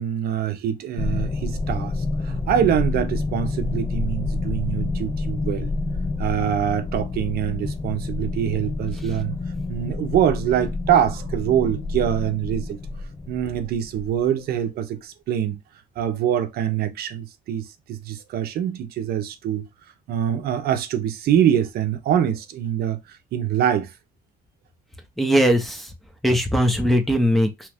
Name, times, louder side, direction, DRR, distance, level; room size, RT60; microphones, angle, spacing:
voice 1, 0.0-5.7 6.2-9.4 9.7-12.8 13.3-15.6 16.0-19.7 20.1-23.9, right 10 dB, 65° right, 0.7 m, -24 dB
sound 1, 1.0-14.3, left 3 dB, 15° left, 0.3 m, -28 dB
voice 2, 25.2-25.9 26.2-27.7, equal, ahead, 0.7 m, -20 dB
3.0 x 2.3 x 3.4 m
cardioid pair, 110°, 17 cm